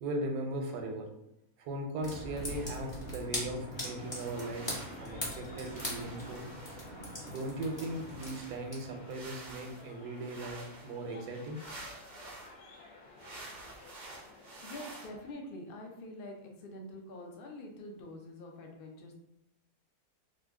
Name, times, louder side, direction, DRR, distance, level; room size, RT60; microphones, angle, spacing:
voice 1, 0.0-1.1 1.6-4.7 5.0-6.4 7.3-11.6, right 1 dB, 85° right, 3 dB, 1.2 m, -38 dB
sound 1, 2.0-9.2, left 1 dB, 20° left, 0.8 m, -41 dB
sound 2, 2.5-3.0 4.0-5.1 5.6-7.0 7.6-12.5 13.2-15.1, right 2 dB, 60° right, 0.4 m, -50 dB
sound 3, 3.7-15.3, left 2 dB, 90° left, 1.2 m, -54 dB
voice 2, 13.1-13.5 14.1-19.1, left 1 dB, 65° left, 1 dB, 0.5 m, -46 dB
2.8 x 2.6 x 3.4 m, 0.83 s
omnidirectional pair, 1.7 m